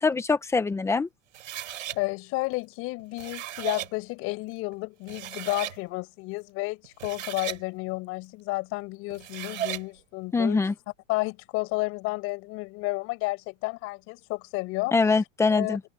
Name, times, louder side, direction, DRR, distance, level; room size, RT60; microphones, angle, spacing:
voice 1, 0.0-1.1 10.3-10.7 14.9-15.8, left 4 dB, 5° left, 1.1 m, -23 dB
sound 1, 1.3-2.0 3.0-3.9 4.7-4.8 5.1-5.8 6.8-7.6 9.1-9.9, right 12 dB, 85° right, 4.3 m, -35 dB
voice 2, 1.9-10.6 11.1-14.9 15.5-15.8, left 23 dB, 35° left, 7.4 m, -31 dB
supercardioid pair, 160°, 38 cm